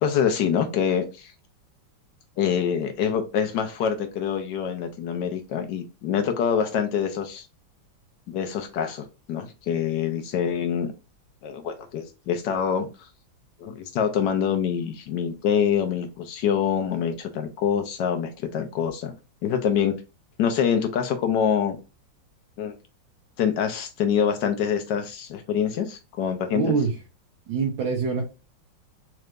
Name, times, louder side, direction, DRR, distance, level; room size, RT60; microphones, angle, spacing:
voice 1, 0.0-1.3 2.4-7.4 8.3-10.9 11.4-12.9 13.6-19.1 19.4-19.9 20.4-21.8 22.6-22.7 23.4-26.7, left 8 dB, 70° left, 6 dB, 1.3 m, -25 dB
voice 2, 26.5-26.9 27.5-28.2, right 5 dB, 80° right, 0 dB, 1.6 m, -24 dB
4.5 x 3.2 x 2.5 m, 0.30 s
omnidirectional pair, 2.1 m